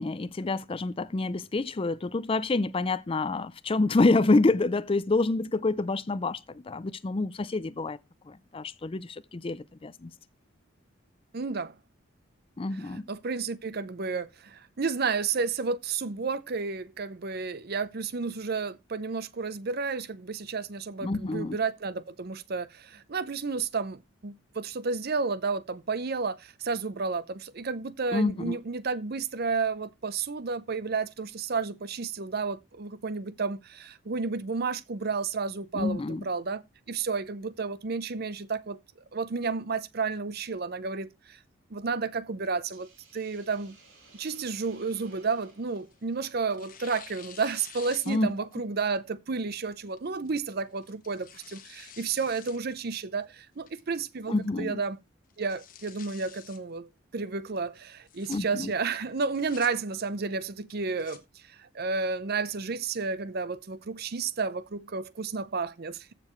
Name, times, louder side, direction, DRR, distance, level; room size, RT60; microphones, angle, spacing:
voice 1, 0.0-8.0 8.3-10.1 12.6-13.1 21.0-21.6 28.1-28.6 35.7-36.3 48.1-48.3 54.3-54.8 58.3-58.7, left 3 dB, 30° left, 0.4 m, -27 dB
voice 2, 11.3-11.8 12.7-38.8 39.1-41.4 41.7-43.8 44.2-55.0 55.4-61.2 61.5-66.1, right 4 dB, 50° right, 0.7 m, -32 dB
Hiss, 42.7-47.0, right 3 dB, 75° right, 6.2 m, -58 dB
Tearing, 44.7-46.0 46.5-48.5 49.0-49.1 50.0-50.3 50.8-52.6 53.0-53.1 53.7-54.1 54.4-54.5 54.8-54.9 55.3-56.6 57.9-58.4 59.1-59.7 60.7-61.2, left 8 dB, 45° left, 1.3 m, -49 dB
14.5 x 6.8 x 3.1 m
head